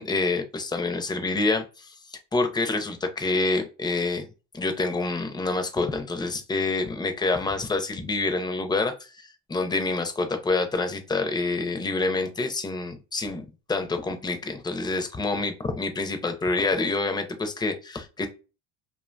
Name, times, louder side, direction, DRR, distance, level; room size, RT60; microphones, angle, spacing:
voice 1, 0.0-4.3 4.5-9.1 9.5-18.3, left 3 dB, 10° left, 6 dB, 0.4 m, -27 dB
2.7 x 2.2 x 2.4 m, 0.31 s
cardioid pair, 105°, 38 cm